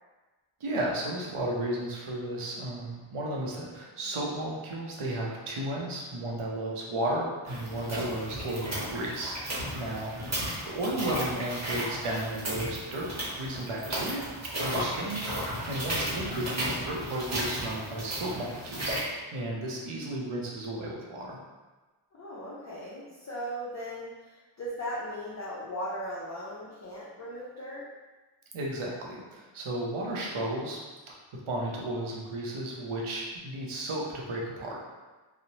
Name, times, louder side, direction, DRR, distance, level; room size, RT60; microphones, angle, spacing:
voice 1, 0.6-10.4 10.6-14.2 14.5-18.9 19.3-21.4 28.5-30.8 31.1-31.2 31.5-34.8, right 1 dB, 80° right, -2 dB, 0.7 m, -34 dB
sound 1, 7.4-19.0, right 1 dB, 35° right, 1.0 m, -34 dB
voice 2, 22.1-27.8 30.2-30.4, equal, 35° left, -7 dB, 0.5 m, -38 dB
3.0 x 2.0 x 2.7 m, 1.2 s
wide cardioid pair, 70°, 49 cm